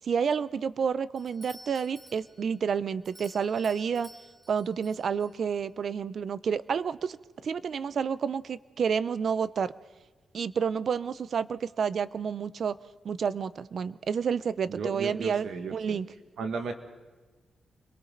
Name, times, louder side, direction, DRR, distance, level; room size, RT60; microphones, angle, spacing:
voice 1, 0.0-4.1 4.5-7.2 7.4-9.7 10.3-12.8 13.0-15.4 15.7-16.1, right 6 dB, 60° right, 16 dB, 0.6 m, -29 dB
Doorbell, 1.2-5.6, equal, 20° right, 2.4 m, -53 dB
voice 2, 14.7-16.0 16.4-16.7, right 4 dB, 80° right, 6 dB, 1.8 m, -34 dB
29.5 x 22.5 x 4.0 m, 1.3 s
cardioid pair, 100°, 0 cm